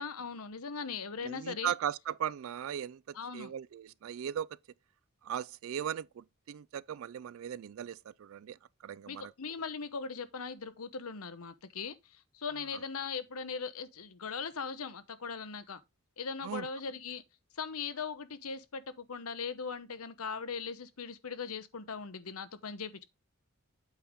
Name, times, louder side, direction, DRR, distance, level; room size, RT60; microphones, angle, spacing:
voice 1, 0.0-1.7 3.1-3.5 9.1-15.8 16.2-17.2 17.5-23.1, left 5 dB, 85° left, 1.0 m, -39 dB
voice 2, 1.2-4.5 5.2-8.6 8.8-9.3 16.4-16.7, right 9 dB, 65° right, 0.3 m, -38 dB
8.4 x 5.6 x 3.5 m
head